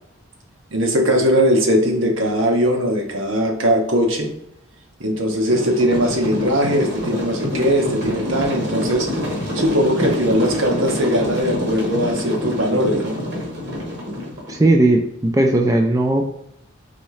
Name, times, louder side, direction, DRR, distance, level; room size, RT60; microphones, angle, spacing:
voice 1, 0.7-4.3 5.0-9.1 9.5-13.2, equal, 70° right, 2 dB, 1.0 m, -19 dB
sound 1, 5.5-14.6, left 1 dB, 55° right, 1.2 m, -26 dB
voice 2, 14.5-16.3, right 1 dB, 15° right, 2 dB, 0.3 m, -17 dB
4.1 x 3.6 x 3.2 m, 0.76 s
head